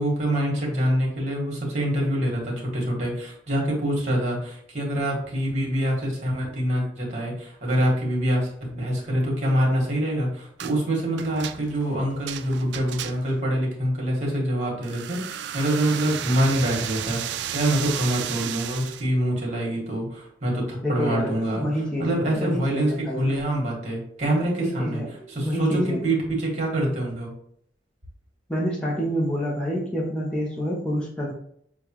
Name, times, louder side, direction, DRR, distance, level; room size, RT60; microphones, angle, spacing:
voice 1, 0.0-21.7 22.0-25.0 25.3-27.3, right 1 dB, 40° right, -2 dB, 1.7 m, -25 dB
sound 1, 10.6-10.8 11.2-13.4 14.8-19.1, right 10 dB, 75° right, 0.3 m, -33 dB
voice 2, 20.8-23.3 24.6-25.1 25.4-26.0 28.5-31.3, equal, 5° left, -5 dB, 0.8 m, -27 dB
6.8 x 2.3 x 3.0 m, 0.65 s
head